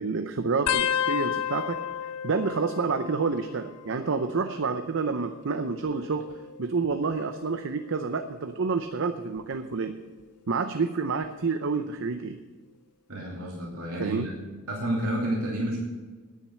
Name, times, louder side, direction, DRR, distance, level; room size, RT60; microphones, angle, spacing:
voice 1, 0.0-1.8 2.2-6.2 6.6-9.9 10.5-12.4 14.0-14.3, right 4 dB, 60° right, 7 dB, 0.6 m, -28 dB
sound 1, 0.7-3.8 4.1-4.7 5.7-7.2 7.8-8.2 9.4-9.7 11.2-11.3, left 10 dB, 85° left, 0.5 m, -32 dB
voice 2, 13.1-14.3 14.7-15.8, right 1 dB, 75° right, -3 dB, 2.8 m, -30 dB
10.0 x 9.4 x 7.6 m, 1.3 s
head